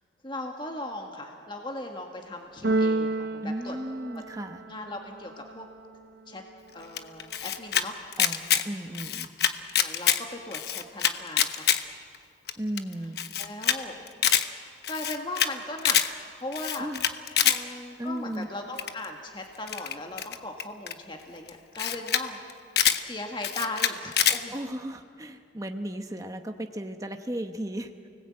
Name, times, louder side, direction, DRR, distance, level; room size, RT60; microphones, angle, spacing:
voice 1, 0.2-3.8 4.7-5.7 6.3-6.4 6.7-8.0 9.8-11.7 13.4-13.9 14.6-16.0 16.3-16.9 17.4-22.4 23.0-24.6, left 2 dB, 25° left, 2 dB, 1.7 m, -38 dB
Keyboard (musical), 2.6-4.7, right 2 dB, 55° right, 0.6 m, -28 dB
voice 2, 3.4-4.6 8.2-9.3 12.6-13.2 16.8-17.0 17.4-17.6 18.0-18.5 24.5-27.9, right 1 dB, 20° right, 5 dB, 1.0 m, -35 dB
Camera, 7.0-7.8 8.1-8.6 8.9-10.2 10.5-11.8 12.1-12.2 12.5-12.6 12.8-12.9 13.2-13.8 14.1-14.4 14.8-15.5 15.8-16.1 16.5-17.6 18.8-19.1 19.7-20.9 21.5-21.6 21.8-22.2 22.5-23.0 23.4-24.4, left 9 dB, 55° left, 1.1 m, -25 dB
29.5 x 19.5 x 8.7 m, 2.3 s
head